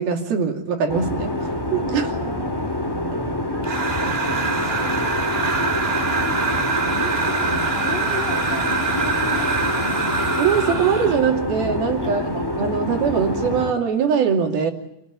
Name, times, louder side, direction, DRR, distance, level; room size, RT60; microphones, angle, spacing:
voice 1, 0.0-1.4 1.7-2.1 10.4-14.7, right 7 dB, 70° right, 4.4 m, -22 dB
sound 1, 0.9-13.7, left 1 dB, 5° left, 1.9 m, -26 dB
voice 2, 1.8-2.6 3.2-5.4 6.1-6.4 6.9-10.1 12.0-12.3, left 4 dB, 35° left, 2.1 m, -36 dB
sound 2, 3.6-11.3, right 4 dB, 20° right, 1.9 m, -24 dB
28.5 x 18.5 x 9.6 m
omnidirectional pair, 4.6 m